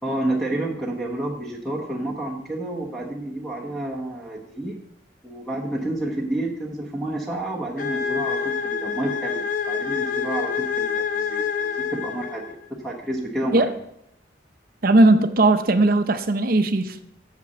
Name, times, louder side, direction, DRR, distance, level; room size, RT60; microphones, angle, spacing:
voice 1, 0.0-4.7 5.2-12.5 12.8-13.8, right 1 dB, ahead, -2 dB, 1.1 m, -29 dB
sound 1, 7.8-12.6, left 6 dB, 45° left, 0.7 m, -27 dB
voice 2, 14.8-17.0, right 2 dB, 50° right, 10 dB, 0.7 m, -18 dB
6.8 x 5.8 x 7.1 m, 0.74 s
head